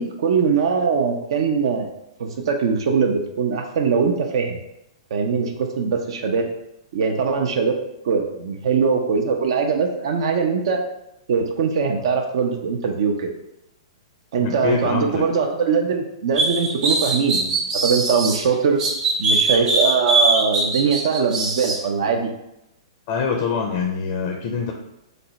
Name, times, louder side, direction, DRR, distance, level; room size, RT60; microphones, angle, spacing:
voice 1, 0.0-1.9 2.2-4.6 5.1-6.5 6.9-7.8 8.0-10.8 11.3-13.3 14.3-18.8 19.2-22.3, right 5 dB, 60° right, 3 dB, 0.5 m, -21 dB
voice 2, 14.4-15.3 23.1-24.7, left 5 dB, 45° left, 1 dB, 0.5 m, -24 dB
sound 1, 16.4-18.4 18.8-21.8, right 3 dB, 25° right, 0.7 m, -21 dB
3.3 x 2.1 x 3.9 m, 0.85 s
hypercardioid pair, 120°, 3 cm